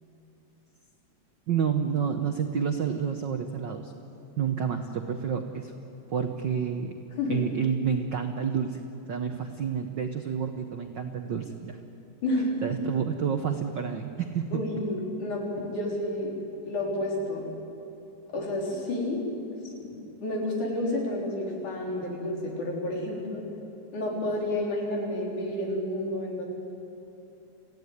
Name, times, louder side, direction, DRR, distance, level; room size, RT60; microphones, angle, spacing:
voice 1, 1.5-3.9 4.4-5.7 6.1-6.9 7.3-8.8 9.1-11.8 12.6-14.6, right 7 dB, 75° right, 6 dB, 1.0 m, -29 dB
voice 2, 12.2-12.6 14.5-16.4 16.7-17.5 18.3-19.2 19.7-23.4 23.9-26.4, left 1 dB, 75° left, -1 dB, 5.4 m, -30 dB
27.0 x 16.0 x 9.5 m, 2.9 s
omnidirectional pair, 3.5 m